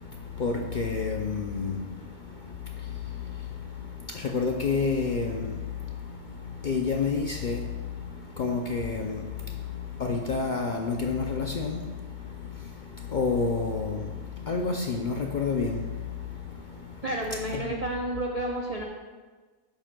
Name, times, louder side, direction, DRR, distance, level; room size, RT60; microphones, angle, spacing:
voice 1, 0.0-17.8, left 4 dB, 55° left, 0.5 m, -30 dB
voice 2, 17.0-18.8, right 1 dB, 40° right, 0.6 m, -31 dB
10.0 x 7.4 x 2.3 m
omnidirectional pair, 1.3 m